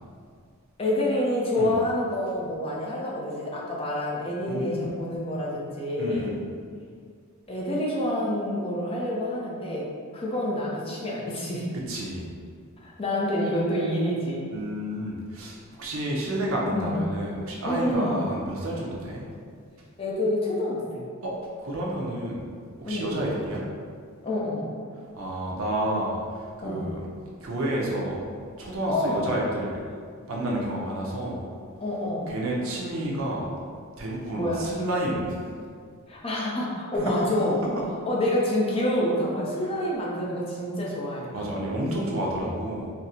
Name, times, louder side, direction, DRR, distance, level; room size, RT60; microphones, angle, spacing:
voice 1, 0.8-6.4 7.5-9.9 10.1-11.7 12.8-14.4 16.7-17.1 17.6-18.2 20.0-21.0 22.9-23.2 24.2-24.7 26.6-26.9 28.9-29.3 31.8-32.3 34.4-34.6 36.1-37.6 38.1-41.3, left 1 dB, 25° left, -4 dB, 0.5 m, -27 dB
voice 2, 4.5-4.9 6.0-6.4 11.7-12.3 14.5-19.3 21.2-22.4 22.8-23.6 25.1-27.0 27.4-28.2 28.6-29.8 30.3-31.4 32.3-33.5 34.0-35.4 37.0-37.1 37.8-37.9 41.3-42.9, right 1 dB, 65° right, -3 dB, 0.6 m, -30 dB
4.1 x 2.0 x 2.6 m, 2.1 s
head